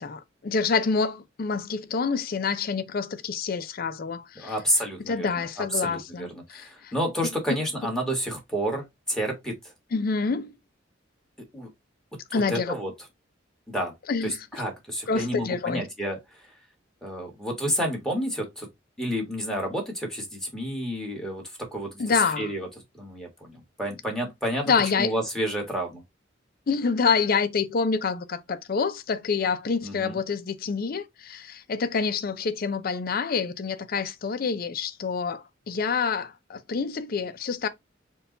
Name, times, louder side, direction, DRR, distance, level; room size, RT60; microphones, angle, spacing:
voice 1, 0.0-4.5 5.1-6.9 9.9-10.5 12.3-12.7 14.1-14.5 15.1-15.8 22.0-22.5 24.7-25.1 26.7-37.7, left 5 dB, 50° left, 0.4 m, -27 dB
voice 2, 4.3-5.3 5.7-9.5 11.5-11.7 12.5-12.9 13.7-13.9 14.2-16.2 17.0-18.7 19.0-22.7 23.0-24.7 25.0-26.0 29.8-30.2, equal, 5° left, 1.4 m, -30 dB
4.5 x 2.3 x 3.8 m
head